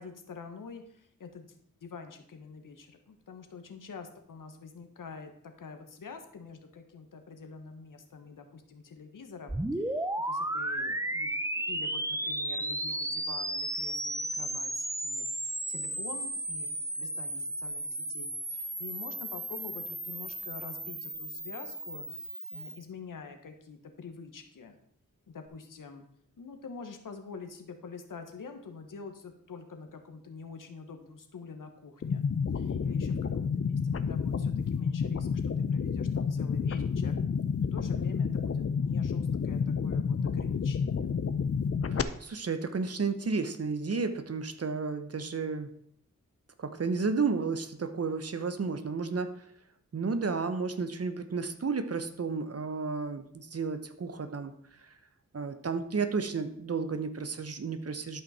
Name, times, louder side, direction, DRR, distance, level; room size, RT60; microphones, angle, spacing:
voice 1, 0.0-1.5 1.8-11.3 11.7-24.8 25.3-26.0 26.4-32.2 32.5-37.2 37.6-41.1, left 5 dB, 75° left, 6 dB, 1.4 m, -46 dB
sound 1, 9.5-22.8, right 1 dB, 10° right, 0.8 m, -34 dB
sound 2, 32.0-42.0, left 6 dB, 45° left, 0.6 m, -30 dB
voice 2, 41.9-45.7 46.6-49.4 49.9-54.5 54.8-54.9 55.3-58.2, right 4 dB, 50° right, 10 dB, 1.0 m, -32 dB
12.0 x 5.5 x 4.3 m, 0.68 s
cardioid pair, 50°, 32 cm